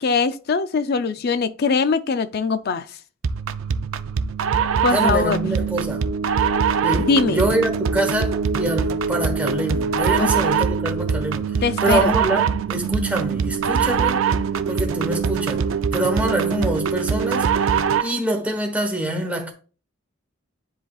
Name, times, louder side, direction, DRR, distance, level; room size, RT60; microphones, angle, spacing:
voice 1, 0.0-2.9 4.8-5.4 7.0-7.4 10.2-10.3 11.6-12.2, left 4 dB, 50° left, 0.4 m, -21 dB
sound 1, 3.2-18.2, right 6 dB, 75° right, 0.4 m, -22 dB
voice 2, 4.9-6.0 6.8-11.4 11.8-14.2 14.7-15.6 15.9-17.5 18.0-19.5, right 1 dB, 5° right, 1.2 m, -25 dB
10.0 x 4.0 x 2.3 m
head